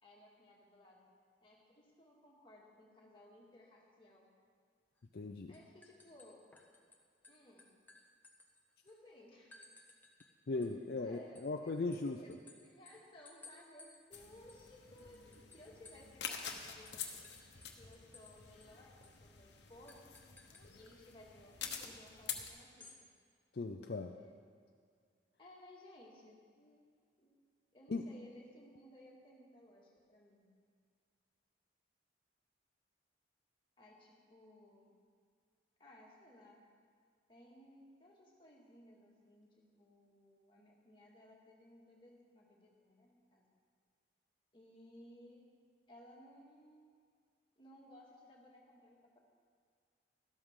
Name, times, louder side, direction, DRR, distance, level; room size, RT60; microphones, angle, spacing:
voice 1, 0.0-1.1 1.4-4.3 5.5-6.4 7.3-7.7 8.8-9.7 11.0-17.1 17.8-20.1 20.7-22.9 24.0-24.5 25.4-26.9 27.2-27.4 27.7-30.5 33.8-34.9 35.8-36.6 37.3-43.5 44.5-45.4 45.9-46.9 47.6-49.2, left 1 dB, 30° left, -3 dB, 2.0 m, -60 dB
sound 1, 5.0-5.2 5.5-7.0 7.2-9.0 9.5-10.3 10.6-16.2 16.5-16.6 16.9-18.3 18.6-18.7 19.0-19.2 19.9-20.7 22.6-23.0, left 3 dB, 10° left, 0.9 m, -60 dB
voice 2, 5.1-5.5 10.5-12.2 23.5-24.1 27.9-28.1, left 3 dB, 55° left, 5 dB, 0.4 m, -38 dB
sound 2, 14.1-22.5, left 7 dB, 70° left, 1.0 m, -48 dB
13.0 x 12.5 x 3.7 m, 2.1 s
head